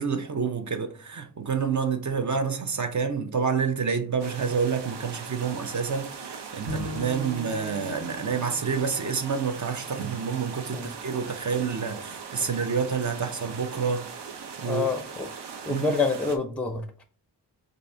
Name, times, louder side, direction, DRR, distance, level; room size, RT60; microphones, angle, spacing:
voice 1, 0.0-14.1 14.6-14.9 15.7-15.9, right 6 dB, 45° right, 0.6 m, -28 dB
sound 1, 4.2-16.4, right 6 dB, 85° right, 0.7 m, -40 dB
Bowed string instrument, 6.7-9.9, right 1 dB, 65° right, 1.1 m, -39 dB
voice 2, 14.7-15.3 15.7-17.0, left 4 dB, 5° left, 0.5 m, -28 dB
4.0 x 2.6 x 3.2 m
wide cardioid pair, 115°, 40 cm